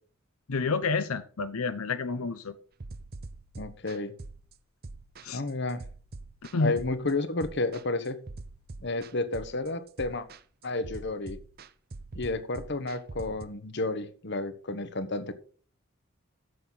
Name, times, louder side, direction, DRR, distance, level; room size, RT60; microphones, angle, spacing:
voice 1, 0.5-2.6 5.2-5.4 6.5-6.8, left 4 dB, 85° left, 0.7 m, -29 dB
sound 1, 2.8-13.5, right 3 dB, 45° right, 0.7 m, -44 dB
voice 2, 3.6-4.1 5.3-5.8 6.6-8.2 8.8-10.3 10.6-11.4 12.1-15.3, left 2 dB, 55° left, 1.1 m, -31 dB
12.5 x 7.8 x 4.0 m
head